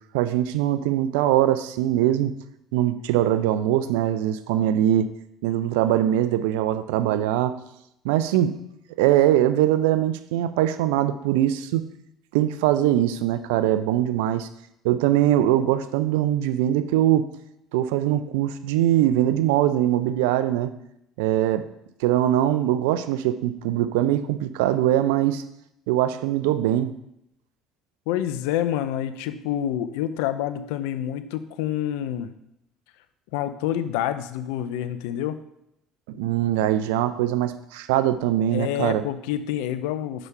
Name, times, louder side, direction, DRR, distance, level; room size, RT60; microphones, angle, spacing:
voice 1, 0.1-2.3 2.7-5.1 5.4-7.6 8.0-8.6 9.0-11.8 12.3-14.5 14.8-17.3 17.7-20.7 21.2-21.7 22.0-25.4 25.9-26.9 36.1-39.0, right 12 dB, 80° right, 12 dB, 0.5 m, -22 dB
voice 2, 28.1-32.3 33.3-35.4 38.5-40.3, left 11 dB, 80° left, 11 dB, 0.5 m, -27 dB
6.1 x 5.0 x 5.6 m, 0.80 s
hypercardioid pair, 70°, 0 cm